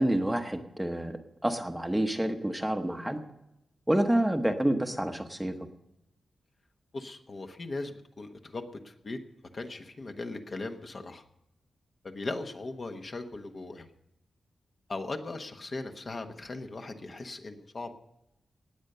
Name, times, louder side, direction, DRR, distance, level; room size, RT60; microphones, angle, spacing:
voice 1, 0.0-3.2 3.9-5.5, right 1 dB, 5° right, 6 dB, 1.0 m, -28 dB
voice 2, 6.9-9.2 9.5-11.2 12.0-13.9 14.9-17.9, left 2 dB, 35° left, 5 dB, 1.1 m, -38 dB
19.0 x 8.1 x 6.7 m, 0.85 s
wide cardioid pair, 170°, 0 cm